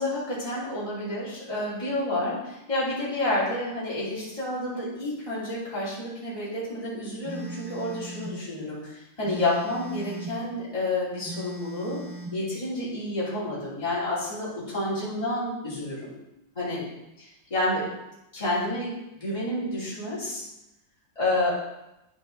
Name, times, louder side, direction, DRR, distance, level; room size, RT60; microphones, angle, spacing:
voice 1, 0.0-12.0 12.3-16.1 16.5-16.9 17.2-17.8 18.3-18.9 19.2-20.4 21.1-21.5, left 1 dB, 20° left, -10 dB, 2.9 m, -29 dB
Telephone, 7.2-8.4 9.2-10.4 11.2-12.4, right 2 dB, ahead, 1.8 m, -38 dB
10.5 x 4.7 x 3.8 m, 0.91 s
omnidirectional pair, 1.9 m